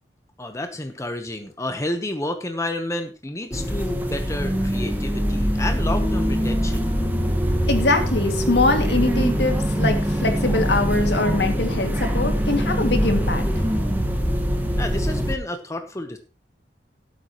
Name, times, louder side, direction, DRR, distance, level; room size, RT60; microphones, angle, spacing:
voice 1, 0.4-6.9 14.8-16.2, left 1 dB, 15° left, 6 dB, 1.1 m, -30 dB
sound 1, 3.5-15.3, equal, 10° right, 1.6 m, -23 dB
voice 2, 7.7-13.4, left 2 dB, 75° left, 5 dB, 2.3 m, -23 dB
16.5 x 8.6 x 3.1 m, 0.30 s
head